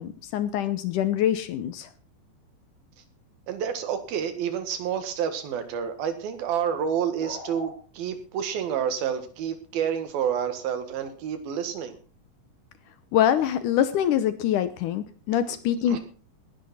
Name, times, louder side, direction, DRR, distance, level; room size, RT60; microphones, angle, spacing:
voice 1, 0.0-1.9 13.1-16.0, left 10 dB, 70° left, 13 dB, 2.0 m, -24 dB
voice 2, 3.5-12.0 15.5-15.6 15.9-16.0, right 8 dB, 75° right, 9 dB, 3.5 m, -29 dB
sound 1, 7.2-7.8, left 3 dB, 40° left, 3.9 m, -39 dB
19.0 x 11.0 x 4.3 m, 0.38 s
omnidirectional pair, 4.4 m